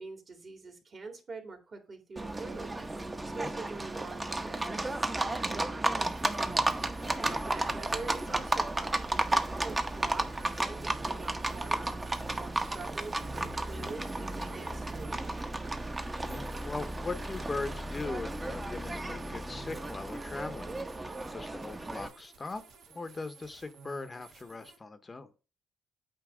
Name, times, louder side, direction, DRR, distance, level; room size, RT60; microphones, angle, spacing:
voice 1, 0.0-2.7 3.2-6.1 7.2-11.9 12.4-15.3, right 3 dB, 45° right, 4 dB, 2.1 m, -45 dB
Livestock farm animals working animals, 2.2-22.1, right 2 dB, 20° right, 0.8 m, -33 dB
sound 1, 6.0-24.8, right 5 dB, 75° right, 1.6 m, -56 dB
voice 2, 7.0-7.4 16.2-22.6 22.9-25.3, left 3 dB, 25° left, 10 dB, 0.8 m, -40 dB
8.4 x 3.0 x 6.1 m, 0.33 s
cardioid pair, 90°, 0 cm